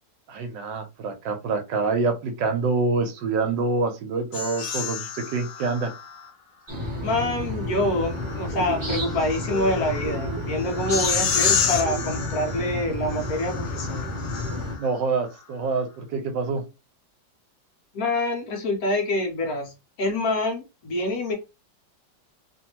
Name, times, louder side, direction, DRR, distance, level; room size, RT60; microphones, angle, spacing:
voice 1, 0.3-5.9 14.8-16.6, right 4 dB, 80° right, 6 dB, 1.4 m, -26 dB
sound 1, 4.3-6.3 7.7-14.9, left 6 dB, 85° left, 1.4 m, -30 dB
sound 2, 6.7-14.8, left 2 dB, 30° right, 1.0 m, -31 dB
voice 2, 7.0-14.0 17.9-21.3, left 1 dB, 60° left, 3 dB, 1.1 m, -26 dB
sound 3, 8.5-12.7, right 3 dB, 65° right, 1.1 m, -38 dB
3.1 x 2.6 x 2.9 m, 0.27 s
omnidirectional pair, 1.9 m